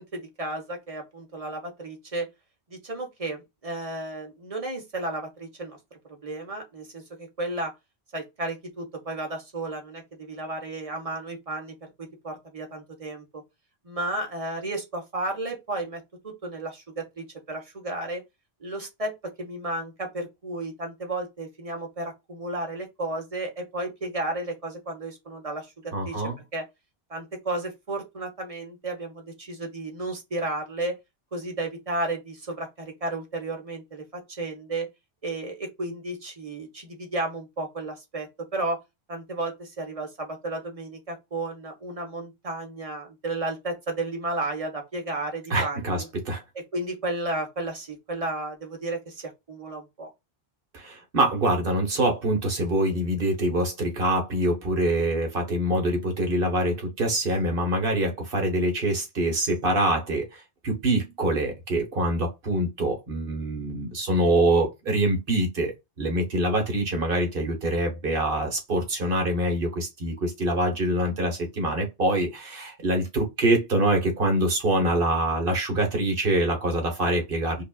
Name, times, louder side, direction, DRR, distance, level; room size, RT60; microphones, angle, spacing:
voice 1, 0.0-2.3 2.7-5.8 6.2-7.7 8.1-13.4 13.8-18.2 18.6-19.1 19.4-26.2 26.5-26.6 27.1-31.0 31.3-34.9 35.2-38.8 39.1-46.1 46.7-50.1, right 2 dB, 35° right, 1.2 m, -33 dB
voice 2, 25.9-26.4 45.5-46.4 50.7-65.7 66.0-77.6, right 1 dB, 60° right, 1.5 m, -25 dB
5.2 x 2.5 x 2.3 m
omnidirectional pair, 1.1 m